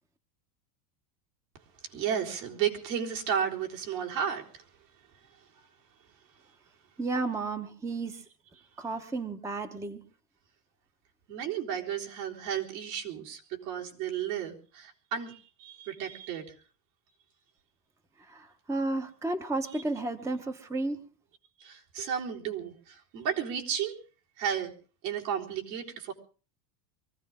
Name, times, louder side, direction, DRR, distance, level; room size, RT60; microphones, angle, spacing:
voice 1, 1.8-4.6 8.6-8.7 11.3-16.5 19.7-19.8 21.6-24.0 24.4-24.7 25.0-26.1, right 8 dB, 70° right, -1 dB, 4.2 m, -33 dB
voice 2, 7.0-8.2 8.8-10.0 18.3-21.1, right 2 dB, 5° right, 8 dB, 0.8 m, -32 dB
24.0 x 15.0 x 3.6 m, 0.39 s
supercardioid pair, 130°, 50 cm